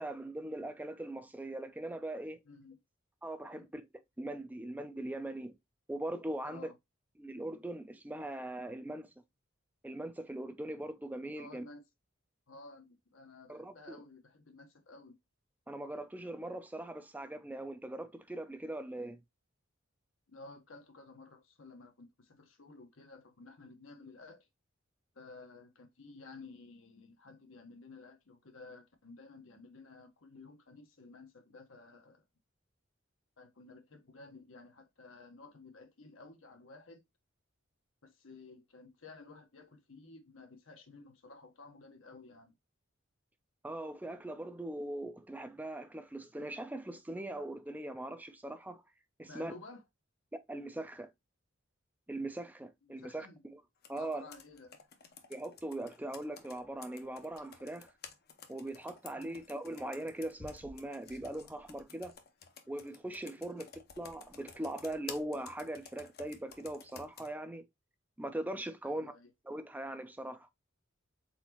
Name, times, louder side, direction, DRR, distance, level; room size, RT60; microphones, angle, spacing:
voice 1, 0.0-2.4 3.2-3.8 4.2-5.5 5.9-6.6 7.2-9.1 9.8-11.7 13.5-14.0 15.7-19.2 43.6-48.8 49.2-49.5 50.5-51.1 52.1-53.3 53.5-53.6 53.9-54.2 55.3-57.9 58.5-62.1 62.7-63.6 64.0-67.6 68.2-69.1 69.5-70.5, right 1 dB, 10° right, 0.4 m, -40 dB
voice 2, 2.4-2.8 3.5-3.7 6.4-6.7 11.4-11.8 12.5-15.2 20.3-24.5 25.1-32.2 33.4-37.0 38.0-42.5 49.3-49.8 52.8-53.4 53.9-54.7 59.1-59.4 63.3-63.6 68.8-69.3, left 3 dB, 80° left, 1.1 m, -54 dB
Computer keyboard, 53.8-67.3, left 6 dB, 50° left, 0.7 m, -53 dB
4.2 x 4.0 x 2.9 m
head